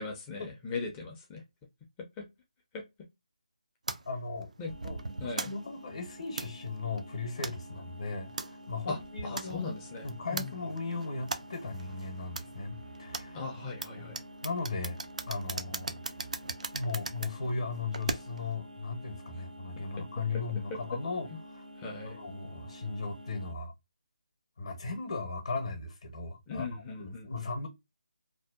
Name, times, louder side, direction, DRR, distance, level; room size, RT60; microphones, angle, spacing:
voice 1, 0.0-1.4 2.2-2.3 2.7-2.8 4.6-4.7 5.2-5.5 8.9-10.0 10.3-10.5 13.3-14.2 21.8-22.2 26.5-27.5, left 4 dB, 15° left, 0.5 m, -39 dB
sound 1, 3.9-18.6, right 3 dB, 65° right, 0.4 m, -41 dB
voice 2, 4.1-4.5 4.8-9.6 10.0-13.4 13.9-14.1 14.4-15.0 15.3-16.0 16.7-21.6 22.0-23.7 24.6-27.7, left 3 dB, 55° left, 0.8 m, -37 dB
sound 2, 4.6-23.5, equal, 90° right, 0.8 m, -50 dB
2.6 x 2.1 x 2.2 m
figure-of-eight pair, 160°, 4 cm